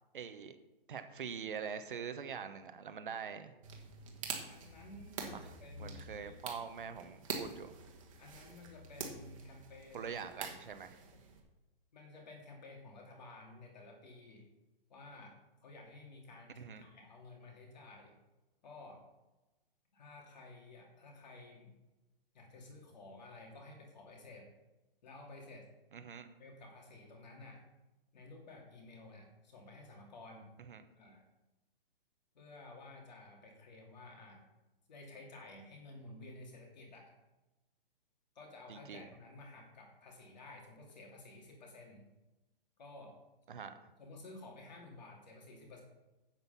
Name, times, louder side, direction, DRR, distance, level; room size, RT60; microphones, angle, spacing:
voice 1, 0.1-0.6 0.9-3.5 5.3-5.4 5.8-7.7 9.9-11.0 16.6-16.8 25.9-26.3 30.7-30.8 38.7-39.1 43.5-43.7, right 6 dB, 60° right, 9 dB, 1.0 m, -44 dB
sound 1, 3.6-11.4, right 5 dB, 35° right, 1.5 m, -46 dB
voice 2, 4.5-6.4 8.2-10.6 11.9-14.4 14.9-15.4 15.6-18.1 18.6-19.0 19.9-21.7 22.3-24.5 25.0-25.7 26.4-27.6 28.1-30.5 31.0-31.2 32.3-34.5 34.9-37.1 38.3-42.0 42.8-43.2 44.0-45.8, left 2 dB, 45° left, 0 dB, 2.7 m, -53 dB
8.2 x 8.0 x 5.6 m, 1.1 s
hypercardioid pair, 180°, 30 cm